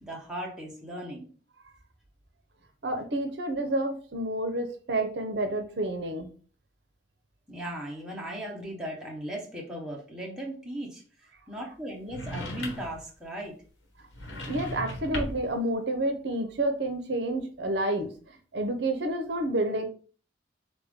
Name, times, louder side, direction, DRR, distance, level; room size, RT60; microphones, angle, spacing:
voice 1, 0.0-1.3 7.5-11.0 11.5-13.6, right 1 dB, 5° right, -3 dB, 1.0 m, -37 dB
voice 2, 2.8-6.3 14.5-18.1 18.5-19.8, right 1 dB, 65° right, 6 dB, 0.7 m, -29 dB
sound 1, 12.1-13.0 14.1-15.5, equal, 90° left, 1.3 m, -36 dB
3.8 x 3.4 x 3.5 m, 0.40 s
head